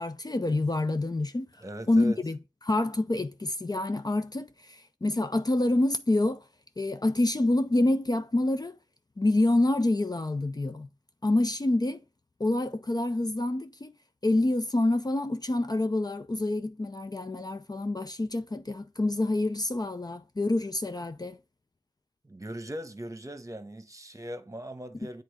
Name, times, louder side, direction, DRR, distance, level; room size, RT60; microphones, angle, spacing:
voice 1, 0.0-1.5 1.9-2.4 2.6-6.4 6.8-8.8 9.2-10.9 11.2-12.0 12.4-13.9 14.2-21.4, left 2 dB, 30° left, 0.5 m, -27 dB
voice 2, 1.6-2.2 22.2-25.2, equal, 25° right, 1.2 m, -39 dB
7.8 x 3.7 x 5.0 m
cardioid pair, 40°, 13 cm